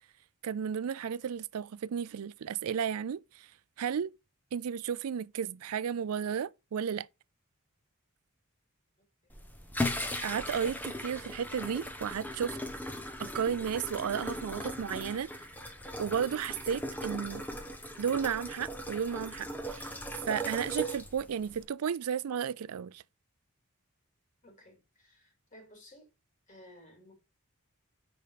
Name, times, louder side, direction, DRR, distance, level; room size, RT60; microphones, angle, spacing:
voice 1, 0.4-3.5 3.8-4.1 4.5-7.1 10.2-12.6 13.2-15.3 16.0-17.4 18.0-19.9 20.3-23.0, right 7 dB, 85° right, 0.4 m, -33 dB
sound 1, 9.3-21.6, equal, 10° left, 1.1 m, -38 dB
voice 2, 24.4-26.1 26.5-27.1, left 1 dB, 35° left, 3.9 m, -56 dB
6.7 x 5.3 x 5.1 m
head